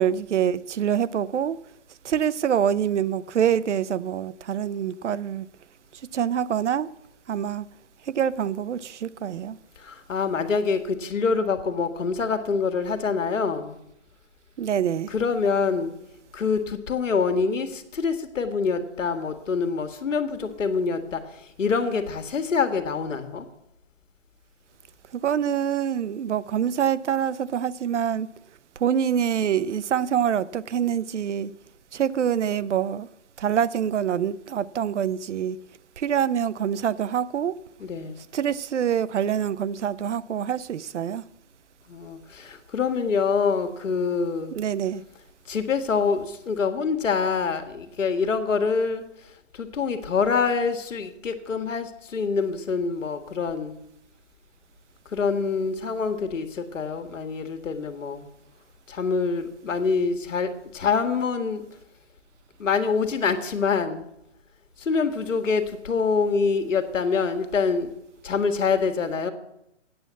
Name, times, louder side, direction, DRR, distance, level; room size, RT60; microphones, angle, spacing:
voice 1, 0.0-1.6 2.0-5.5 6.1-6.9 7.3-7.7 8.1-9.6 14.6-15.1 25.1-28.3 28.8-31.5 31.9-33.1 33.4-35.6 36.0-37.6 38.3-41.2 44.5-45.0, right 9 dB, 70° right, 0.7 m, -25 dB
voice 2, 9.8-13.8 15.1-15.9 16.3-23.4 37.8-38.2 41.9-44.5 45.5-49.0 49.5-53.8 55.0-58.3 58.9-61.6 62.6-64.1 64.8-67.9 68.2-69.3, left 5 dB, 85° left, 1.7 m, -25 dB
8.9 x 7.3 x 8.1 m
hypercardioid pair, 175°, 37 cm